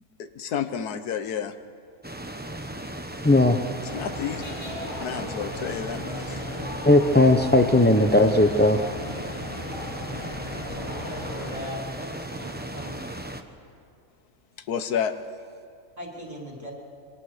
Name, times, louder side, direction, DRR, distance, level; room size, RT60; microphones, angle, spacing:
voice 1, 0.2-1.5 3.9-4.4 5.0-6.4 14.7-15.1, left 8 dB, 90° left, 10 dB, 1.5 m, -30 dB
sound 1, 2.0-13.4, right 1 dB, 5° right, 0.9 m, -36 dB
voice 2, 3.2-3.6 6.8-8.8, left 2 dB, 10° left, 4 dB, 0.5 m, -17 dB
sound 2, 3.9-11.7, left 1 dB, 40° left, 4.9 m, -37 dB
voice 3, 10.7-13.0 16.0-16.7, equal, 25° right, -2 dB, 4.4 m, -39 dB
27.0 x 23.5 x 6.6 m, 2.5 s
omnidirectional pair, 1.6 m